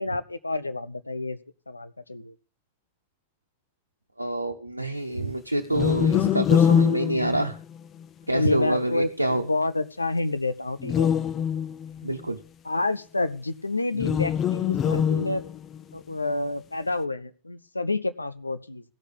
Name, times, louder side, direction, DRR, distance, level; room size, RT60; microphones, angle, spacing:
voice 1, 0.0-1.4 1.7-2.3 8.3-11.1 12.6-15.4 15.9-18.8, left 2 dB, 80° left, 13 dB, 0.8 m, -29 dB
voice 2, 4.2-7.6 8.3-9.5 12.0-12.4, right 1 dB, 85° right, 3 dB, 0.9 m, -26 dB
sound 1, 5.7-8.0 10.8-12.1 13.9-15.8, left 8 dB, 30° left, 0.6 m, -23 dB
16.0 x 6.6 x 8.2 m, 0.39 s
figure-of-eight pair, 90°, 0 cm